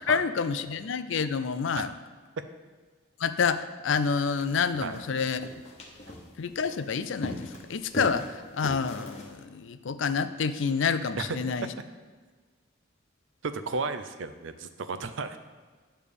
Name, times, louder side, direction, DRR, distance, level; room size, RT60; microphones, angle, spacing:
voice 1, 0.1-1.9 3.2-5.5 6.4-8.3 8.5-11.7, left 5 dB, 70° left, 11 dB, 0.4 m, -28 dB
sound 1, 4.1-9.4, equal, 35° left, 1.0 m, -41 dB
voice 2, 13.4-15.4, right 4 dB, 70° right, 10 dB, 0.5 m, -33 dB
9.1 x 3.3 x 6.7 m, 1.5 s
head